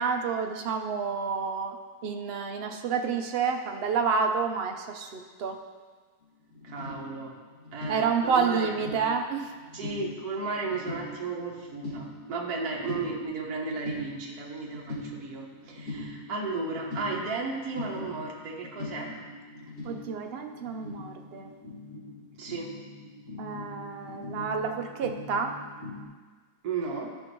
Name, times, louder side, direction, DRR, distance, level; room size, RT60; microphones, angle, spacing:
voice 1, 0.0-1.8 2.0-5.6 7.9-9.5 19.8-21.5 23.4-25.5, right 5 dB, 50° right, 4 dB, 0.7 m, -29 dB
sound 1, 6.2-6.3 6.5-26.0, left 2 dB, 50° left, 2.6 m, -42 dB
voice 2, 6.6-7.3 7.7-8.7 9.7-19.2 22.4-22.7 26.6-27.2, right 3 dB, 70° right, -2 dB, 1.5 m, -34 dB
14.0 x 5.4 x 3.1 m, 1.4 s
omnidirectional pair, 1.7 m